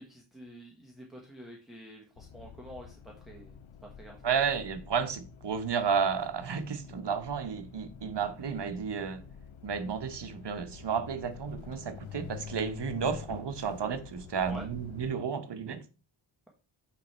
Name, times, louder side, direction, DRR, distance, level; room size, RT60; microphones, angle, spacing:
voice 1, 0.0-3.5 4.0-4.2 14.5-14.7, right 1 dB, ahead, 1.2 m, -47 dB
sound 1, 2.2-15.1, left 8 dB, 70° left, 0.7 m, -47 dB
voice 2, 4.2-9.3 9.6-15.8, right 6 dB, 55° right, 1.0 m, -32 dB
9.3 x 3.4 x 4.3 m
wide cardioid pair, 120°, 49 cm